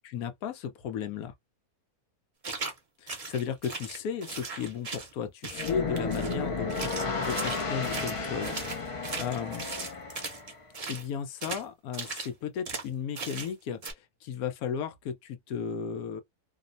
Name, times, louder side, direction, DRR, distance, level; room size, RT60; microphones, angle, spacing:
voice 1, 0.0-1.3 3.0-6.8 7.2-8.6 8.8-9.6 10.9-16.2, left 7 dB, 85° left, 1.1 m, -35 dB
sound 1, 2.4-2.8 3.1-5.1 5.4-6.4 6.7-11.1 11.4-11.6 11.9-12.3 12.6-12.9 13.1-13.5 13.8-13.9, right 4 dB, 35° right, 0.6 m, -38 dB
sound 2, 5.5-10.6, left 4 dB, 45° left, 0.4 m, -33 dB
2.9 x 2.0 x 2.5 m
omnidirectional pair, 1.5 m